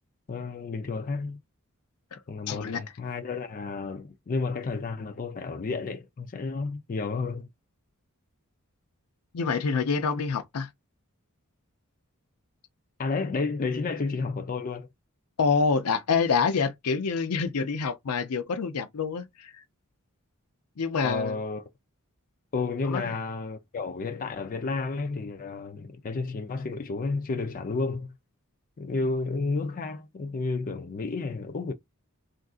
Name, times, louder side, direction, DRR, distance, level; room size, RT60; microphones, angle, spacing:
voice 1, 0.3-1.4 2.3-7.5 13.0-14.9 21.0-21.6 22.5-28.1 28.8-31.7, left 3 dB, 40° left, 0.4 m, -31 dB
voice 2, 2.5-2.8 9.3-10.7 15.4-19.6 20.8-21.4 22.8-23.1, left 5 dB, 85° left, 0.5 m, -27 dB
3.6 x 2.6 x 2.3 m
head